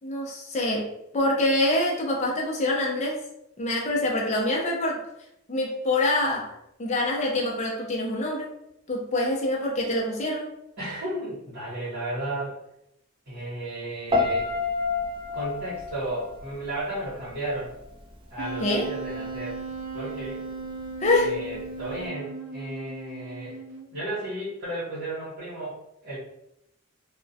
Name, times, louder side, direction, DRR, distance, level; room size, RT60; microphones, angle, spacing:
voice 1, 0.0-3.2 3.6-5.0 5.5-6.5 6.8-8.5 8.9-10.5 18.6-18.9 21.0-21.4, left 1 dB, 35° left, 0 dB, 0.5 m, -25 dB
voice 2, 10.8-12.6 13.3-14.5 15.3-17.7 18.3-19.6 19.9-20.4 21.2-23.6 23.9-26.2, right 1 dB, 60° right, -12 dB, 1.0 m, -34 dB
Piano, 14.1-17.2 17.5-17.9, left 3 dB, 25° right, 0.3 m, -28 dB
Wind instrument woodwind instrument, 18.4-24.0, right 3 dB, 85° right, 0.5 m, -37 dB
2.3 x 2.1 x 2.6 m, 0.81 s
head